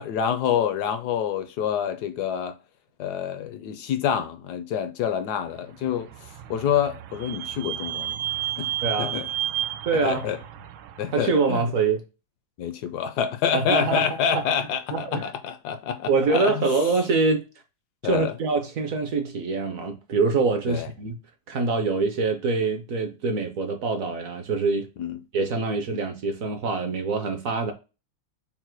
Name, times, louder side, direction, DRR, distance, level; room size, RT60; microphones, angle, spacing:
voice 1, 0.0-2.5 3.0-6.1 6.5-8.2 8.6-8.7 9.0-9.2 10.0-10.4 11.0-11.6 12.6-16.7 18.0-18.3 20.7-20.9 25.0-25.2, left 8 dB, 75° left, 0.9 m, -27 dB
Vehicle / Squeak, 5.8-11.4, right 12 dB, 85° right, 1.4 m, -32 dB
voice 2, 8.8-9.2 9.9-10.3 11.1-12.0 13.5-14.5 14.9-15.3 16.1-17.4 18.0-21.2 21.5-24.9 25.3-27.7, right 4 dB, 65° right, 0.8 m, -25 dB
5.6 x 2.2 x 4.4 m
omnidirectional pair, 2.2 m